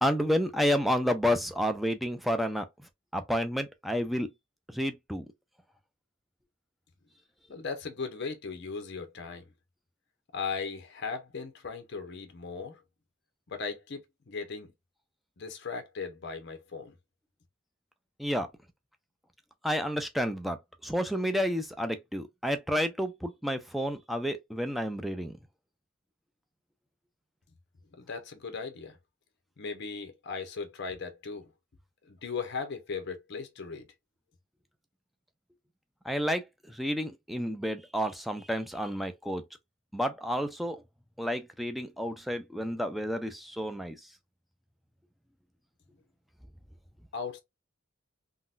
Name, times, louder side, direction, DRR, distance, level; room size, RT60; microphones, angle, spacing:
voice 1, 0.0-2.6 3.1-4.3 4.7-5.3 18.2-18.5 19.6-25.3 36.1-36.4 36.7-39.4 39.9-40.8 41.2-44.0, equal, ahead, 0.4 m, -30 dB
voice 2, 7.5-9.5 10.3-12.8 13.5-14.0 14.3-14.7 15.4-16.9 28.0-29.0 29.6-31.5 32.1-33.9 47.1-47.4, left 5 dB, 55° left, 0.7 m, -37 dB
3.8 x 2.1 x 2.4 m
head